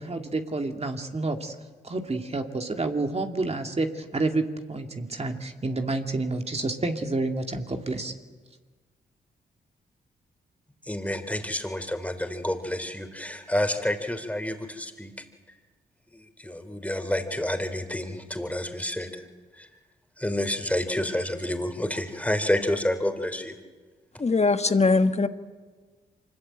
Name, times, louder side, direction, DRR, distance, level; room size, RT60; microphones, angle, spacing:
voice 1, 0.0-1.5 1.8-8.1, right 2 dB, 35° right, 4 dB, 2.5 m, -29 dB
voice 2, 10.9-15.1 16.1-19.2 19.5-19.7 20.2-23.5, left 1 dB, 5° left, 7 dB, 3.6 m, -29 dB
voice 3, 24.2-25.3, left 3 dB, 35° left, 9 dB, 1.4 m, -21 dB
24.5 x 20.5 x 8.9 m, 1.4 s
supercardioid pair, 50°, 19 cm